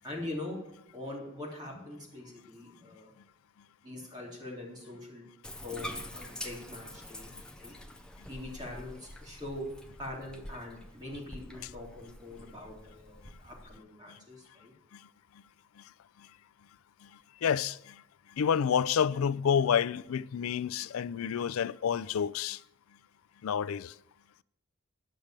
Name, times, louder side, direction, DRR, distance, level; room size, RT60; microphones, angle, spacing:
voice 1, 0.0-3.1 3.8-5.2 5.6-7.7 8.3-14.7, left 1 dB, 20° right, 3.8 m, -43 dB
Bathtub (filling or washing), 5.4-13.8, left 1 dB, 5° left, 0.7 m, -46 dB
voice 2, 17.4-17.9 18.4-22.6 23.4-23.9, left 7 dB, 90° left, 0.4 m, -29 dB
10.5 x 6.6 x 7.3 m
head